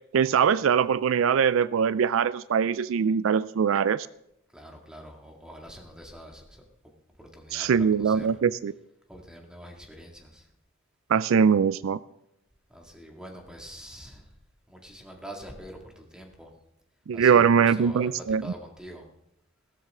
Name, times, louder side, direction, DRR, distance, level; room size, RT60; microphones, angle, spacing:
voice 1, 0.1-4.1 7.5-8.7 11.1-12.0 17.1-18.4, right 7 dB, 75° right, 18 dB, 0.4 m, -22 dB
voice 2, 4.5-6.6 7.2-8.4 9.1-10.5 12.7-14.3 14.7-16.5 17.1-19.1, equal, 5° right, 1 dB, 2.1 m, -45 dB
16.5 x 13.5 x 3.7 m, 0.80 s
head